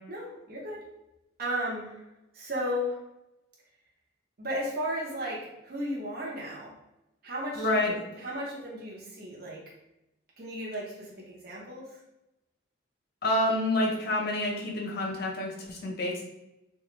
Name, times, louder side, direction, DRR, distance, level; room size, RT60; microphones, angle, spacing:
voice 1, 0.1-0.8 1.4-2.0 2.3-3.0 4.4-6.7 7.2-9.6 10.4-12.0, equal, 50° right, -4 dB, 0.7 m, -35 dB
voice 2, 7.5-7.9 13.2-16.2, left 1 dB, 50° left, -1 dB, 0.6 m, -28 dB
3.3 x 2.2 x 3.0 m, 0.91 s
head